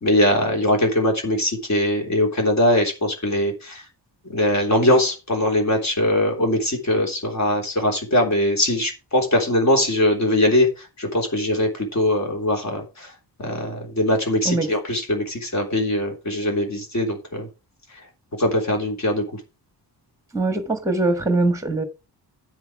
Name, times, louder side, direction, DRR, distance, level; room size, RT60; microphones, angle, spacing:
voice 1, 0.0-3.8 4.3-13.1 13.4-17.5 18.4-19.2, left 1 dB, 40° left, 3.3 m, -21 dB
voice 2, 20.3-21.8, right 2 dB, 5° right, 1.4 m, -22 dB
9.4 x 7.9 x 4.8 m
wide cardioid pair, 175°, 42 cm